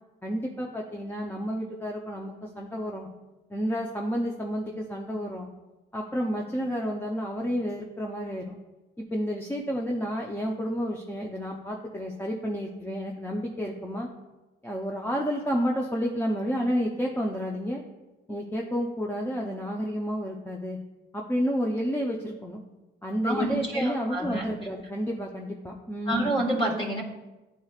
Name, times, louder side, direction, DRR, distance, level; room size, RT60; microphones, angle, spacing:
voice 1, 0.2-3.1 3.5-5.5 5.9-8.6 9.0-14.1 14.6-17.8 18.3-20.8 21.1-22.6 23.0-26.4, equal, 10° left, -1 dB, 0.7 m, -30 dB
voice 2, 23.2-24.5 26.1-27.0, right 1 dB, 25° left, 0 dB, 1.7 m, -28 dB
11.0 x 4.2 x 2.4 m, 1.1 s
cardioid pair, 90°, 20 cm